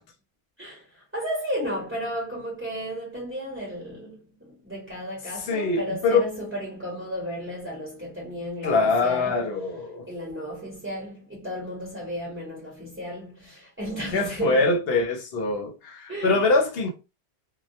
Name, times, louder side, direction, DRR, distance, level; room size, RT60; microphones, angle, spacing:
voice 1, 0.6-9.4 10.1-14.6 16.1-16.4, equal, 15° right, 0.9 m, -34 dB
voice 2, 5.4-6.3 8.6-10.1 14.1-16.9, left 3 dB, 65° left, 0.8 m, -23 dB
2.2 x 2.1 x 2.7 m
omnidirectional pair, 1.1 m